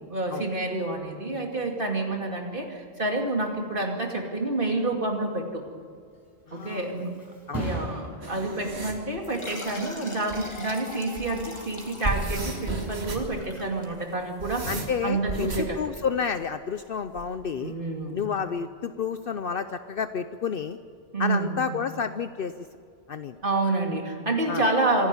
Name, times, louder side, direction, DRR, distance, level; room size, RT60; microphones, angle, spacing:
voice 1, 0.1-5.6 6.5-7.1 7.6-14.7 15.0-15.8 17.6-18.2 21.1-21.7 23.4-25.1, right 2 dB, 55° right, 1 dB, 2.7 m, -28 dB
Thump thud, 5.9-13.4 13.8-14.2, right 1 dB, 20° right, 7.9 m, -41 dB
voice 2, 6.5-6.9 7.5-7.7 14.7-17.7 18.1-20.8 21.2-22.6 23.1-23.4 24.5-24.6, left 6 dB, 60° left, 10 dB, 0.9 m, -30 dB
sound 1, 8.2-9.0 10.3-10.4 10.9-11.3 11.8-13.4 14.1-15.7 17.2-17.6, right 2 dB, 70° right, 2.7 m, -33 dB
sound 2, 9.2-14.4, left 1 dB, 25° left, 2.5 m, -42 dB
25.5 x 11.5 x 9.8 m, 2.2 s
omnidirectional pair, 1.1 m